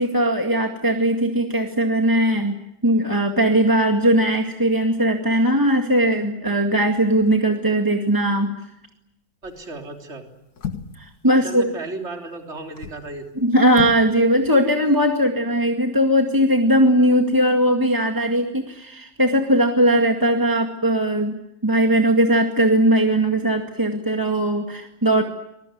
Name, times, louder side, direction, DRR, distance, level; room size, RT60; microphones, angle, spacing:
voice 1, 0.0-2.6 2.8-8.5 11.0-11.7 13.4-21.4 21.6-25.2, right 1 dB, 10° right, 3 dB, 1.9 m, -19 dB
sound 1, 9.4-9.7 10.6-11.1 12.6-13.1 13.7-14.1 14.4-14.5, left 7 dB, 60° left, 2.1 m, -33 dB
voice 2, 9.4-10.3 11.3-13.3, right 2 dB, 35° right, 3 dB, 3.8 m, -34 dB
25.0 x 21.5 x 9.5 m, 0.84 s
omnidirectional pair, 2.0 m